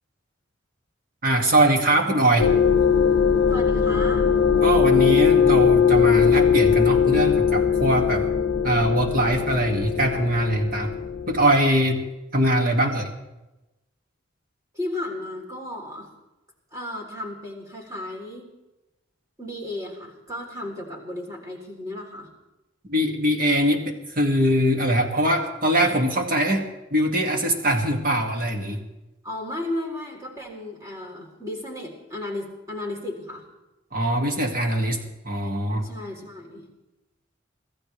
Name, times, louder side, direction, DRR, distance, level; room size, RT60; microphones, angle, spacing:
voice 1, 1.2-2.5 4.6-8.3 8.6-10.9 11.3-12.1 12.3-13.1 22.9-28.8 33.9-35.9, right 1 dB, 45° right, 2 dB, 2.3 m, -22 dB
sound 1, 2.4-11.5, left 7 dB, 65° left, 0.6 m, -20 dB
voice 2, 3.5-4.3 14.7-16.1 16.7-18.5 19.4-22.3 29.2-33.5 35.8-36.7, left 1 dB, 15° right, -2 dB, 3.6 m, -34 dB
25.5 x 15.5 x 3.4 m, 0.99 s
head